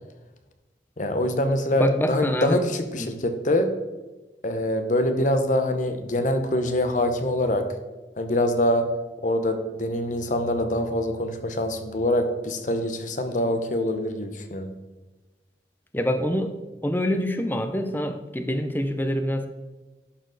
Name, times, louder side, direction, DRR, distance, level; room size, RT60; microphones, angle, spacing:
voice 1, 1.0-3.7 4.4-7.7 8.2-8.9 9.2-14.7, left 1 dB, 45° left, 7 dB, 0.8 m, -24 dB
voice 2, 1.7-2.6 2.9-3.1 15.9-16.5 16.8-19.5, equal, 10° left, 7 dB, 0.6 m, -25 dB
11.5 x 4.4 x 3.9 m, 1.1 s
head